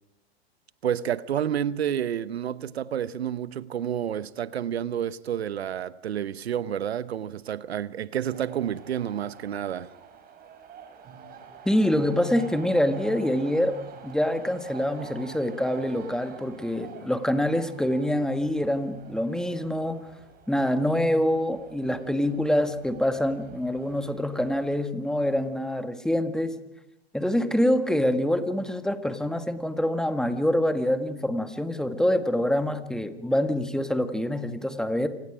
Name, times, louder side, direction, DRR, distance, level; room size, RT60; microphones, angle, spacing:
voice 1, 0.8-9.9, right 9 dB, 75° right, 0.9 m, -29 dB
sound 1, 8.3-24.7, right 7 dB, 30° right, 4.6 m, -47 dB
voice 2, 11.7-13.8 14.0-20.1 20.5-26.6 27.1-35.1, left 1 dB, ahead, 1.7 m, -25 dB
28.0 x 27.0 x 5.1 m
hypercardioid pair, 110°, 32 cm